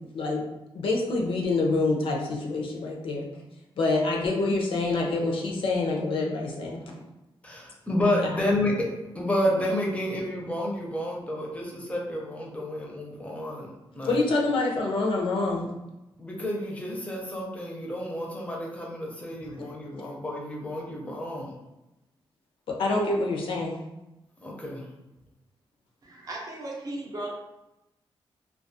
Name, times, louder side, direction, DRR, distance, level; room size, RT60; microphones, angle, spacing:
voice 1, 0.1-0.5 0.7-3.3 3.8-6.9 8.2-8.3 14.0-15.7 22.7-23.8, left 3 dB, 70° left, 0 dB, 0.5 m, -26 dB
voice 2, 7.4-8.9 9.1-14.3 16.2-21.5 24.4-24.8, left 1 dB, 15° left, -2 dB, 0.5 m, -30 dB
voice 3, 26.0-27.3, right 2 dB, 40° right, -2 dB, 0.6 m, -36 dB
2.3 x 2.2 x 2.6 m, 0.96 s
wide cardioid pair, 140°, 9 cm